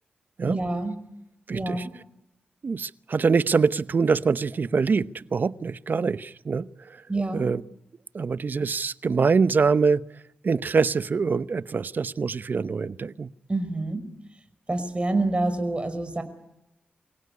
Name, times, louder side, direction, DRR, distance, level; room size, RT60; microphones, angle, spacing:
voice 1, 0.4-1.0 1.5-1.9 7.1-7.5 13.5-14.1 14.7-16.2, right 2 dB, 30° right, 8 dB, 5.2 m, -27 dB
voice 2, 1.5-1.8 2.6-7.0 7.3-7.6 8.1-10.0 10.4-13.3, right 5 dB, 55° right, 17 dB, 0.8 m, -24 dB
25.0 x 16.5 x 9.7 m, 0.85 s
supercardioid pair, 45°, 4 cm